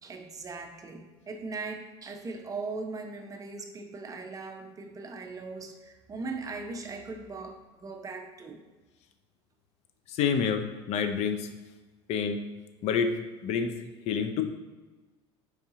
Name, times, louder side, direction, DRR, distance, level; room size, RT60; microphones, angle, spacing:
voice 1, 0.0-8.6, right 3 dB, 25° right, 4 dB, 0.6 m, -39 dB
voice 2, 10.1-10.6 10.9-11.5 12.1-12.4 12.8-13.1 13.4-13.7 14.1-14.4, left 6 dB, 55° left, 8 dB, 0.5 m, -27 dB
4.7 x 2.7 x 3.6 m, 1.2 s
hypercardioid pair, 90°, 14 cm